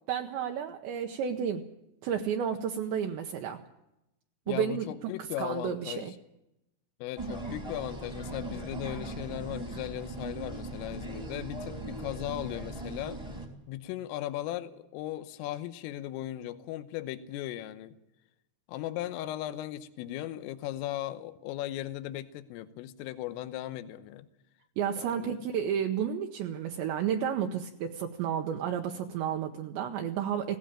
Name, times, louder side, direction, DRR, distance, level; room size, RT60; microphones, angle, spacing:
voice 1, 0.1-1.7 2.0-3.6 4.5-5.1 5.4-6.1 24.8-30.6, right 8 dB, 75° right, 4 dB, 2.8 m, -31 dB
voice 2, 4.5-6.2 7.0-13.2 13.7-18.0 18.7-24.3 25.0-25.4, left 13 dB, 85° left, 12 dB, 3.5 m, -37 dB
sound 1, 7.2-13.5, right 2 dB, 10° right, 1.7 m, -39 dB
18.0 x 17.0 x 8.8 m, 0.88 s
omnidirectional pair, 5.9 m